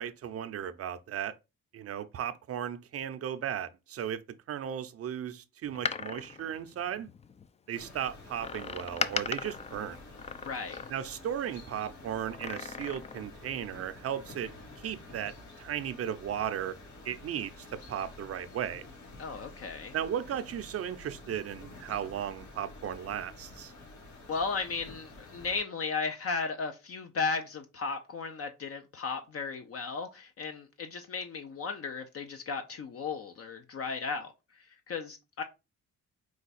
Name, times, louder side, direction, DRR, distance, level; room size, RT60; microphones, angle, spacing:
voice 1, 0.0-1.4 1.7-7.1 7.7-10.0 10.9-14.5 14.8-16.8 17.0-18.9 19.9-23.7, right 9 dB, 50° right, 0.6 m, -36 dB
Door, 5.6-7.5 8.4-11.3 12.2-13.3 13.6-13.7, left 5 dB, 20° left, 0.4 m, -38 dB
sound 1, 7.7-25.6, left 2 dB, 70° left, 2.3 m, -50 dB
voice 2, 10.4-10.8 19.2-19.9 24.3-34.3 34.9-35.4, left 4 dB, 50° left, 0.7 m, -35 dB
4.7 x 2.3 x 4.1 m
cardioid pair, 90°, 30 cm